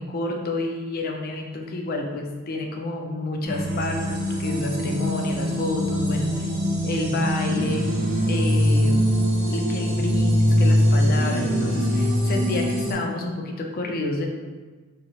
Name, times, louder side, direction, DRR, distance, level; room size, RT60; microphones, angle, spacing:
voice 1, 0.0-6.5 6.8-7.9 8.2-9.2 9.5-14.3, left 2 dB, 40° left, 1 dB, 0.4 m, -29 dB
sound 1, 3.4-12.9, equal, 45° right, 1.2 m, -22 dB
2.9 x 2.4 x 2.7 m, 1.4 s
head